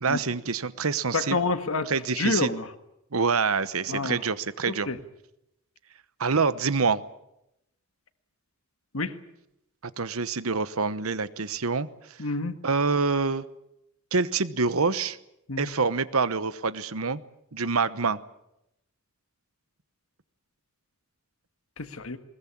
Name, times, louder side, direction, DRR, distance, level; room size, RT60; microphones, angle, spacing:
voice 1, 0.0-1.4 1.9-2.5 3.1-4.9 6.2-7.0 10.0-11.9 12.6-13.4 14.1-15.2 15.6-17.2 17.5-18.2, right 4 dB, 80° right, 15 dB, 1.0 m, -26 dB
voice 2, 1.1-2.7 3.9-4.2 4.7-5.0 8.9-9.1 12.2-12.6 15.5-15.7 21.8-22.2, left 3 dB, 70° left, 9 dB, 1.6 m, -28 dB
21.0 x 20.5 x 8.7 m, 0.84 s
head